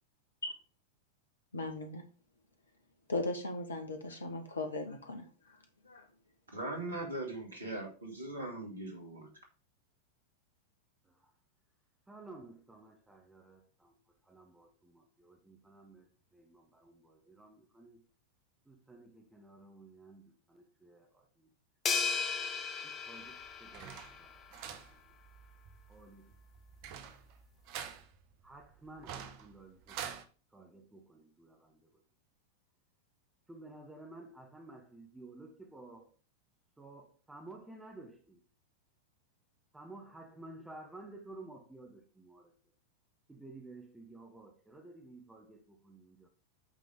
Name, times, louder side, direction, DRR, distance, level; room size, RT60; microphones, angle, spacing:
voice 1, 1.5-2.0 3.1-5.3 5.8-6.0, left 2 dB, 70° left, 1.5 m, -37 dB
voice 2, 6.5-9.3, right 2 dB, 75° right, 2.2 m, -40 dB
voice 3, 12.1-18.1 18.6-21.5 22.8-24.4 24.9-25.1 25.9-26.4 28.4-30.1 30.5-32.0 33.5-36.1 36.8-38.4 39.7-42.5 43.3-46.3, right 2 dB, 10° right, 1.2 m, -53 dB
sound 1, 21.9-24.3, left 5 dB, 25° left, 1.0 m, -35 dB
sound 2, 23.2-30.2, right 8 dB, 45° right, 1.0 m, -48 dB
8.5 x 3.8 x 5.2 m
figure-of-eight pair, 90°, 0 cm